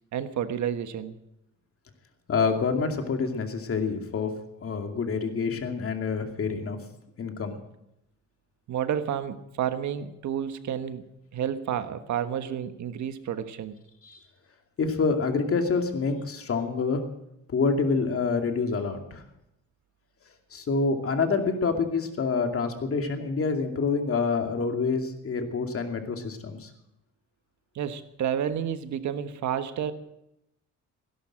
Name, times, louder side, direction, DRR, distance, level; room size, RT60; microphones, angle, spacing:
voice 1, 0.1-1.2 8.7-11.0 11.3-13.8 27.7-29.9, right 9 dB, 70° right, 10 dB, 1.3 m, -30 dB
voice 2, 2.3-4.3 4.6-6.8 7.2-7.6 14.0-14.2 14.8-17.0 17.5-19.2 20.5-26.7, left 4 dB, 50° left, 5 dB, 2.6 m, -27 dB
17.0 x 11.0 x 7.5 m, 0.85 s
cardioid pair, 90°, 30 cm